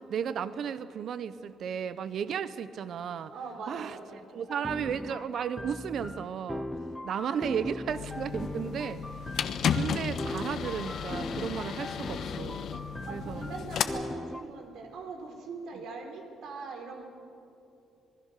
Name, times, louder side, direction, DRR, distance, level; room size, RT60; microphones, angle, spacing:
voice 1, 0.1-3.3 3.7-3.9 4.3-6.7 7.0-9.0 9.7-12.7 13.1-13.4, right 7 dB, 55° right, 14 dB, 0.8 m, -34 dB
voice 2, 3.3-4.2 7.0-7.1 13.1-17.1, right 4 dB, 70° right, 3 dB, 4.3 m, -41 dB
sound 1, 4.5-14.4, left 1 dB, 10° left, 0.6 m, -39 dB
sound 2, 7.9-13.8, left 7 dB, 60° left, 1.1 m, -34 dB
26.5 x 20.5 x 6.6 m, 2.8 s
cardioid pair, 145°, 0 cm